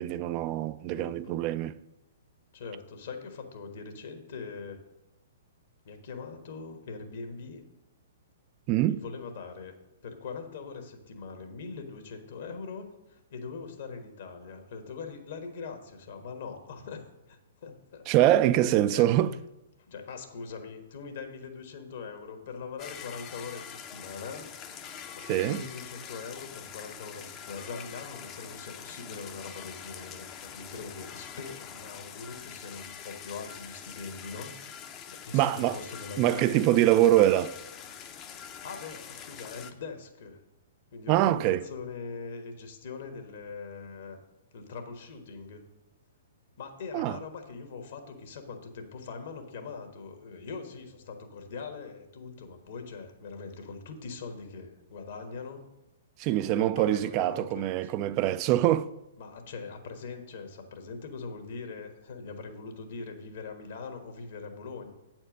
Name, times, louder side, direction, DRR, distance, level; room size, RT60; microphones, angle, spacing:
voice 1, 0.0-1.7 8.7-9.0 18.1-19.3 25.2-25.6 35.3-35.8 36.2-37.5 41.1-41.6 46.9-47.2 56.2-58.9, right 13 dB, 35° right, 0.3 m, -24 dB
voice 2, 0.9-1.4 2.5-4.8 5.8-7.6 8.8-9.7 10.0-18.0 18.9-19.1 19.9-24.5 25.1-34.5 35.1-36.6 38.4-40.4 40.9-44.2 44.5-45.6 46.6-55.6 56.6-57.9 59.2-64.9, left 4 dB, 60° left, 1.3 m, -42 dB
sound 1, 22.8-39.7, left 8 dB, 30° left, 0.6 m, -44 dB
8.4 x 4.4 x 6.3 m
figure-of-eight pair, 120°, 0 cm